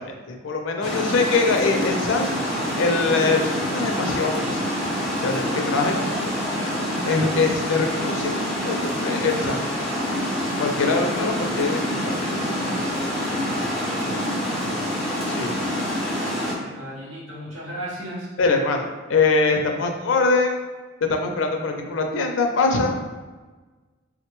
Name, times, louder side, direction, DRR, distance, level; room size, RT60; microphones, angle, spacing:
voice 1, 0.0-2.3 2.8-4.7 5.2-6.4 7.0-10.0 10.6-12.1 15.3-15.6 18.4-20.6 21.0-23.0, left 3 dB, 90° left, 4 dB, 0.4 m, -23 dB
Water, 0.8-16.5, equal, ahead, 0.8 m, -26 dB
voice 2, 13.6-14.9 16.6-18.3, equal, 90° right, -4 dB, 0.8 m, -37 dB
3.7 x 2.1 x 2.9 m, 1.3 s
head